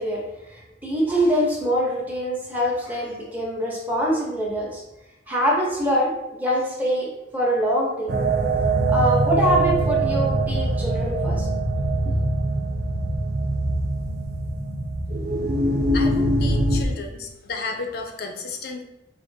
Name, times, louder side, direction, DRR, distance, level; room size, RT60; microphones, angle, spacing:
voice 1, 0.0-4.8 5.3-6.1 6.4-8.2 8.9-11.5 12.1-12.2, equal, 10° right, -4 dB, 0.8 m, -24 dB
sound 1, 8.1-16.9, right 2 dB, 55° right, 0.5 m, -23 dB
voice 2, 15.9-18.8, left 3 dB, 55° left, 3 dB, 0.5 m, -32 dB
4.9 x 2.5 x 2.7 m, 0.92 s
head